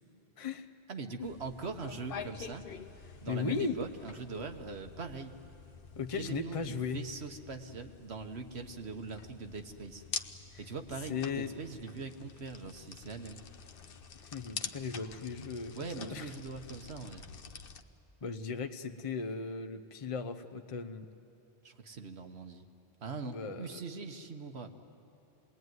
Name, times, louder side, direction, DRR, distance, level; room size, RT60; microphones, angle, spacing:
voice 1, 0.4-0.7 3.3-3.8 6.0-7.0 10.5-10.6 11.1-11.5 14.1-16.3 18.2-21.1 23.2-23.7, left 5 dB, 35° left, 8 dB, 0.8 m, -37 dB
voice 2, 0.9-2.7 3.2-5.3 6.2-10.0 10.6-13.4 15.7-17.3 21.6-22.6 23.0-24.7, right 4 dB, 80° right, 6 dB, 1.5 m, -42 dB
sound 1, 1.2-17.8, left 6 dB, 60° left, 1.0 m, -47 dB
26.5 x 20.5 x 9.5 m, 3.0 s
omnidirectional pair, 1.1 m